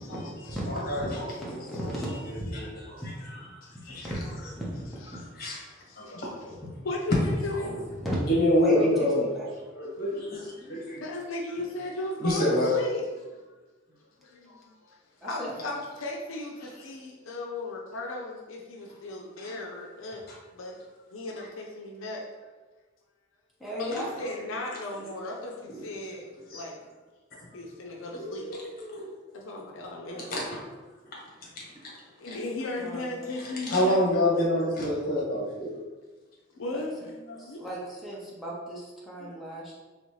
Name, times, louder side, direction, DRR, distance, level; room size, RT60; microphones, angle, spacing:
voice 1, 0.7-1.9 2.5-2.7 3.3-3.4 3.9-4.1 5.4-5.6 6.0-6.3 7.1-7.2 7.6-7.8 8.2-9.3 9.7-11.0 12.2-12.7 19.4-19.5 25.7-25.8 26.5-26.6 28.1-29.0 30.1-30.4 32.3-32.4 33.7-35.7, left 1 dB, 50° left, -4 dB, 1.2 m, -27 dB
voice 2, 1.4-2.0 2.3-3.1 4.0-4.8 8.0-8.2 8.6-8.9 9.2-9.5 15.2-15.7 23.6-24.1 32.7-33.2 36.7-36.8 37.4-39.7, equal, ahead, -8 dB, 0.8 m, -36 dB
voice 3, 3.6-4.0 5.4-6.3 6.8-8.0 10.6-10.7 11.0-13.1 14.2-15.0 15.2-20.2 20.5-20.8 21.1-22.6 23.8-26.3 26.5-26.8 27.5-28.4 29.3-30.3 32.2-34.0 36.5-37.6 39.2-39.4, left 2 dB, 75° left, 0 dB, 0.5 m, -36 dB
4.0 x 3.1 x 3.1 m, 1.3 s
head